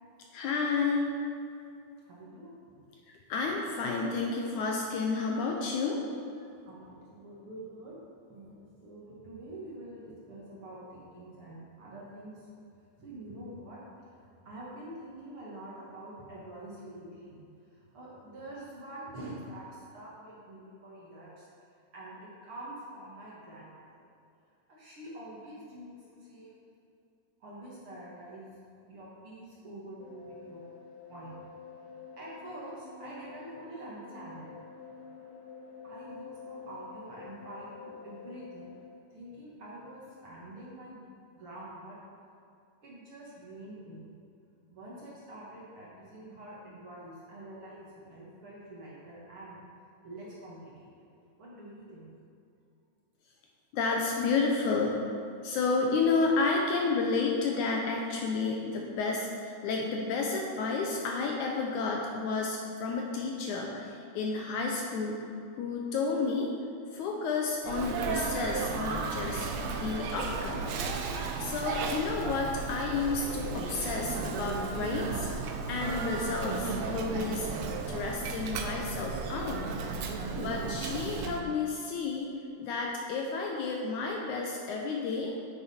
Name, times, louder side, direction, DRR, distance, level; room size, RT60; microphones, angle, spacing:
voice 1, 0.3-1.1 3.1-6.0 53.7-55.0 55.4-65.2 65.6-66.5 66.9-70.7 71.0-77.5 77.9-79.6 80.0-82.3 82.6-85.3, left 4 dB, 75° left, 0 dB, 2.0 m, -31 dB
voice 2, 2.0-2.8 6.6-8.0 8.3-12.5 13.0-13.8 14.1-17.4 17.7-21.5 21.9-24.0 24.7-26.5 27.4-28.5 28.9-30.6 31.1-31.4 32.1-34.5 35.1-35.3 35.8-38.7 39.1-41.0 41.4-42.0 42.8-44.1 44.7-49.6 50.0-51.1 51.4-52.1, right 1 dB, 45° right, -6 dB, 2.1 m, -46 dB
sound 1, 30.0-38.9, left 5 dB, 55° left, 2.3 m, -48 dB
Sneeze, 67.6-81.4, right 4 dB, 90° right, 1.4 m, -34 dB
9.1 x 8.5 x 4.4 m, 2.5 s
omnidirectional pair, 4.0 m